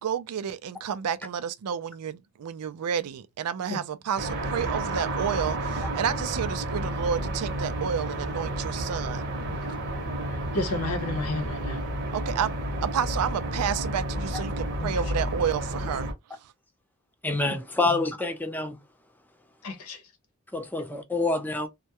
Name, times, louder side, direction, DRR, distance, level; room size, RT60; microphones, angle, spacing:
voice 1, 0.0-9.3 12.1-12.5 12.8-16.1 16.4-16.5, right 8 dB, 90° right, 0.4 m, -30 dB
sound 1, 4.2-16.1, right 1 dB, 50° right, 0.8 m, -31 dB
voice 2, 10.3-11.8 14.8-14.9 17.9-18.0 19.6-20.0, left 2 dB, 80° left, 0.8 m, -32 dB
voice 3, 17.2-18.8 20.5-21.7, left 3 dB, 10° left, 0.4 m, -27 dB
2.2 x 2.1 x 2.8 m
head